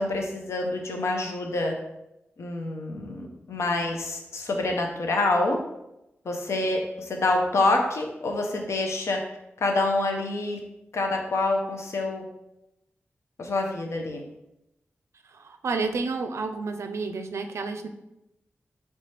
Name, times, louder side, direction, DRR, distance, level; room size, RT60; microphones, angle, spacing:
voice 1, 0.0-1.7 2.4-5.6 6.2-9.2 9.6-10.6 10.9-12.2 13.4-14.2, left 2 dB, 75° left, 2 dB, 0.6 m, -26 dB
voice 2, 15.2-17.9, right 4 dB, 80° right, 7 dB, 0.4 m, -30 dB
4.2 x 3.2 x 3.2 m, 0.88 s
cardioid pair, 70°, 5 cm